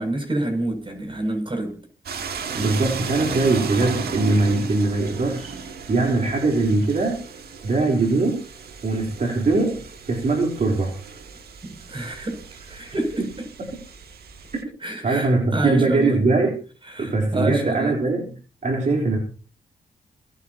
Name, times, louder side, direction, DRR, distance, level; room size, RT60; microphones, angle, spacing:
voice 1, 0.0-1.8 11.9-12.4 12.7-13.5 14.8-16.2 16.9-18.0, right 2 dB, 30° right, 7.0 m, -27 dB
sound 1, 2.1-14.6, right 6 dB, 85° right, 2.4 m, -35 dB
voice 2, 2.5-5.6 5.9-7.2 7.6-8.4 8.8-10.9 15.0-16.6 17.0-18.3 18.6-19.2, right 3 dB, 50° right, 3.7 m, -21 dB
29.0 x 10.0 x 2.9 m
cardioid pair, 75°, 16 cm